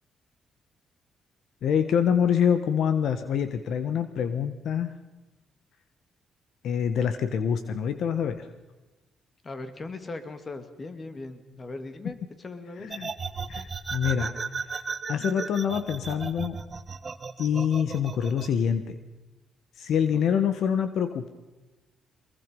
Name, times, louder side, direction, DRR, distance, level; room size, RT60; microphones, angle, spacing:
voice 1, 1.6-5.0 6.6-8.5 12.8-13.1 13.5-14.4 14.6-14.8 15.1-16.6 17.4-19.0 19.8-21.3, left 8 dB, 70° left, 10 dB, 1.3 m, -26 dB
voice 2, 9.4-13.0 20.1-20.4, left 3 dB, 35° left, 9 dB, 2.5 m, -39 dB
sound 1, 12.9-18.5, right 5 dB, 35° right, 1.3 m, -35 dB
24.0 x 21.5 x 5.4 m, 1.1 s
cardioid pair, 90°, 0 cm